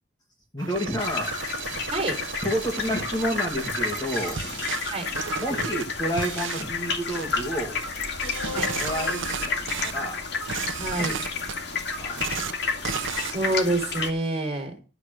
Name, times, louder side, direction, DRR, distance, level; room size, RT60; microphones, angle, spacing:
voice 1, 0.5-1.4 1.7-1.8 2.4-4.6 5.4-7.8 8.2-9.2 9.5-9.6 9.8-10.2 11.1-11.2 11.9-12.2, equal, 20° left, 0 dB, 2.3 m, -30 dB
sound 1, 0.6-5.8 6.2-6.6 7.1-7.4 8.2-9.9 10.3-11.6 12.1-12.5 12.8-13.3, right 7 dB, 75° right, 0.8 m, -34 dB
sound 2, 1.0-14.1, left 4 dB, 55° left, 2.3 m, -31 dB
sound 3, 8.3-13.7, left 4 dB, 75° left, 1.7 m, -42 dB
voice 2, 10.8-11.2 13.1-14.7, right 2 dB, 30° right, 3 dB, 4.1 m, -27 dB
12.5 x 7.2 x 6.4 m, 0.34 s
head